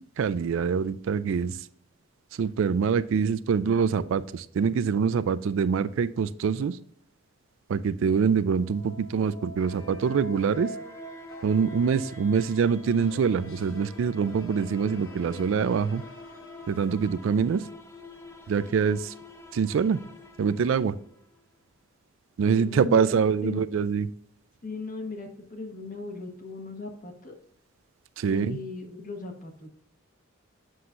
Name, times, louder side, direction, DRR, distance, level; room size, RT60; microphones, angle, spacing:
voice 1, 0.0-1.6 2.4-6.8 7.7-10.7 11.4-16.0 16.7-17.7 18.5-19.1 19.5-20.0 20.4-21.0 22.4-24.1 28.2-28.6, right 6 dB, 70° right, 15 dB, 0.3 m, -25 dB
sound 1, 8.4-21.4, equal, 15° left, 0.6 m, -46 dB
sound 2, 9.6-17.2, left 1 dB, 75° left, 0.9 m, -50 dB
voice 2, 22.5-23.6 24.6-27.3 28.3-29.7, left 3 dB, 40° left, 3 dB, 1.2 m, -37 dB
7.7 x 5.6 x 2.5 m, 0.66 s
head